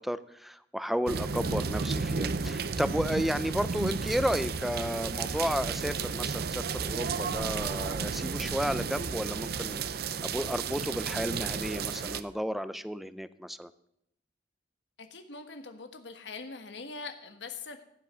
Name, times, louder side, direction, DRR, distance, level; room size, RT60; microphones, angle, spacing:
voice 1, 0.0-13.7, equal, ahead, 14 dB, 0.5 m, -33 dB
sound 1, 1.1-12.2, right 5 dB, 60° right, 0.6 m, -33 dB
voice 2, 15.0-17.8, left 4 dB, 85° left, 7 dB, 1.4 m, -42 dB
15.0 x 8.5 x 6.2 m, 0.74 s
head